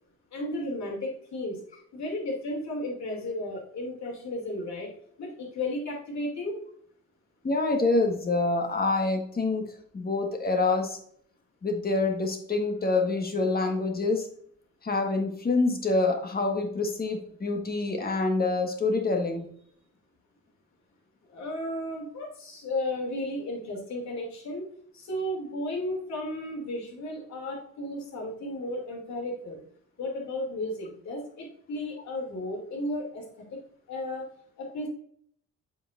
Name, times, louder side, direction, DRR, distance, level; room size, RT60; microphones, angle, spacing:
voice 1, 0.3-4.9 5.2-6.5 21.3-24.6 24.9-29.6 30.0-33.2 33.5-33.6 33.9-34.3 34.6-34.9, left 1 dB, 65° left, -1 dB, 2.8 m, -34 dB
voice 2, 7.4-9.6 9.9-11.0 11.6-14.3 14.8-19.4, left 3 dB, 30° left, 3 dB, 1.5 m, -26 dB
7.6 x 5.4 x 2.5 m, 0.64 s
cardioid pair, 90°, 30 cm